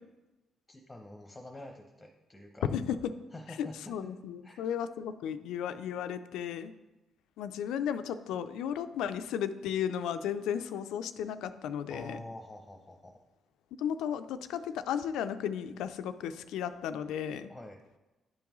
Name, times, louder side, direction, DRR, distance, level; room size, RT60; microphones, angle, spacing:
voice 1, 0.7-2.7 3.3-3.8 4.0-4.1 4.4-4.6 11.9-13.2 17.5-17.8, left 1 dB, 15° left, 3 dB, 0.7 m, -47 dB
voice 2, 2.7-3.1 3.6-6.7 7.4-12.2 13.8-17.5, left 8 dB, 85° left, 11 dB, 0.3 m, -34 dB
10.5 x 3.5 x 3.0 m, 1.1 s
cardioid pair, 90°, 0 cm